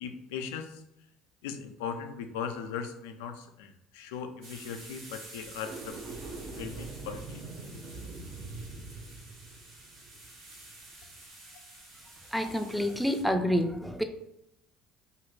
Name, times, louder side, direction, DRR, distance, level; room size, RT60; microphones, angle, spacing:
voice 1, 0.0-0.8 1.4-6.0 6.6-7.4, left 7 dB, 85° left, 7 dB, 0.3 m, -38 dB
sound 1, 4.4-13.2, right 2 dB, 85° right, 1.3 m, -50 dB
sound 2, 5.5-10.8, right 3 dB, 60° right, 0.5 m, -43 dB
voice 2, 12.3-14.0, equal, ahead, 7 dB, 0.4 m, -28 dB
2.7 x 2.4 x 3.1 m, 0.80 s
supercardioid pair, 80°, 0 cm